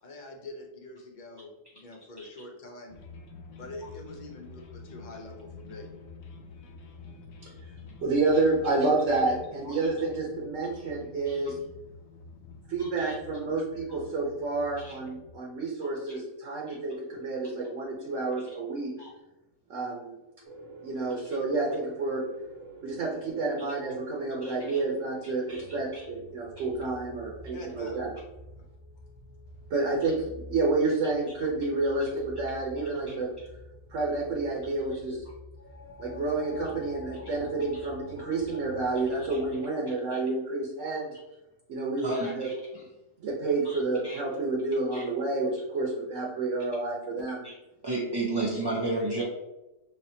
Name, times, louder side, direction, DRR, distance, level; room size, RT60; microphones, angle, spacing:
voice 1, 0.0-3.0 3.6-5.9 27.5-28.0 28.6-28.7, left 2 dB, 40° left, 1 dB, 0.8 m, -45 dB
sound 1, 2.9-15.3, left 4 dB, 80° left, 1.0 m, -48 dB
voice 2, 8.0-11.6 12.7-18.9 19.7-20.2 20.8-22.2 22.8-28.1 29.7-33.3 33.9-35.2 36.0-41.1 41.7-42.5 43.2-47.5, right 3 dB, 65° right, -2 dB, 1.2 m, -29 dB
voice 3, 12.8-13.1 14.8-15.0 16.7-16.8 19.0-19.1 24.4-24.8 25.5-25.6 25.9-26.1 37.2-37.3 39.3-39.4 40.1-40.2 42.0-42.8 43.6-43.8 44.0-44.2 44.9-45.0 47.4-47.5 47.8-49.2, right 2 dB, 40° right, -4 dB, 0.3 m, -33 dB
sound 2, 20.4-25.8, right 3 dB, 90° right, 1.4 m, -48 dB
sound 3, 25.5-39.6, left 1 dB, 10° left, 1.2 m, -48 dB
5.6 x 3.1 x 2.7 m, 0.99 s
omnidirectional pair, 1.4 m